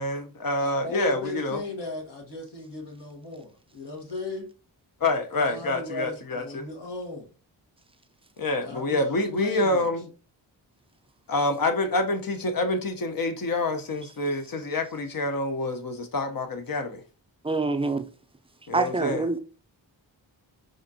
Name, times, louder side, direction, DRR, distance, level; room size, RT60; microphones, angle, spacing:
voice 1, 0.0-1.6 5.0-6.7 8.4-10.1 11.3-17.0 18.7-19.3, left 2 dB, 50° left, 0.8 m, -27 dB
voice 2, 0.6-4.5 5.4-7.3 8.6-9.9, left 3 dB, 65° left, 1.5 m, -36 dB
voice 3, 17.4-18.0 18.7-19.4, right 3 dB, 15° right, 0.5 m, -25 dB
4.9 x 2.6 x 2.7 m
cardioid pair, 45°, 44 cm